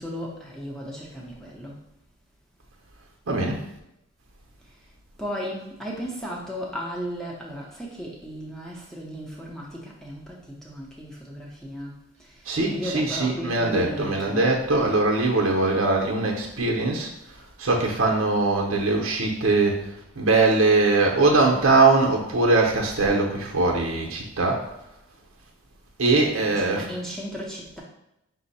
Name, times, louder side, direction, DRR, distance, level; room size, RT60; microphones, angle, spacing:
voice 1, 0.0-1.7 5.2-10.4 10.6-11.9 12.6-14.5 26.3-27.8, equal, ahead, -3 dB, 0.7 m, -35 dB
voice 2, 3.3-3.6 12.5-17.1 17.6-19.9 20.2-24.6 26.0-26.9, right 3 dB, 80° right, 0 dB, 0.8 m, -21 dB
5.5 x 2.1 x 4.1 m, 0.84 s
head